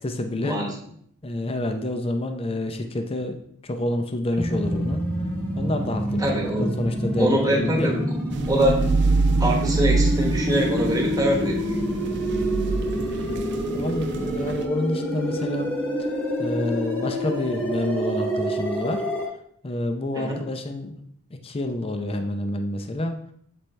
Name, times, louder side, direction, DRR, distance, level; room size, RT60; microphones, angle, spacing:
voice 1, 0.0-0.6 1.2-3.4 3.6-5.0 5.6-7.9 13.7-15.7 16.4-19.0 19.6-21.0 21.3-23.2, left 1 dB, 25° left, 6 dB, 0.5 m, -28 dB
sound 1, 4.4-19.3, equal, 10° left, 1.3 m, -27 dB
voice 2, 6.2-6.7 7.2-8.0 8.5-8.8 9.4-11.8 20.1-20.4, right 1 dB, 15° right, 0 dB, 1.2 m, -23 dB
sound 2, 8.3-14.6, right 3 dB, 55° right, 0.4 m, -26 dB
7.6 x 4.2 x 3.3 m, 0.65 s
head